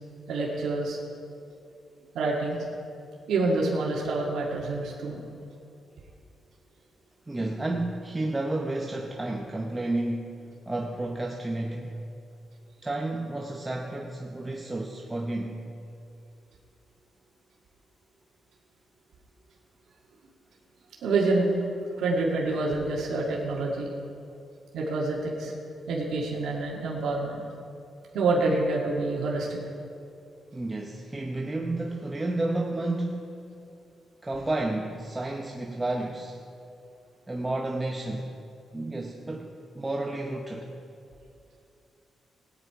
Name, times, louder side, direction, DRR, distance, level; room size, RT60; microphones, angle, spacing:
voice 1, 0.3-1.0 2.2-2.6 3.3-5.2 21.0-21.5 22.0-23.9 24.7-25.5 25.9-27.4 28.1-29.6, right 3 dB, 85° right, -3 dB, 1.8 m, -27 dB
voice 2, 7.3-10.4 10.7-11.9 12.8-15.6 30.5-33.2 34.2-36.4 37.3-38.3 38.7-40.7, right 2 dB, 15° right, 1 dB, 0.8 m, -31 dB
17.5 x 9.7 x 4.8 m, 2.6 s
cardioid pair, 125°, 0 cm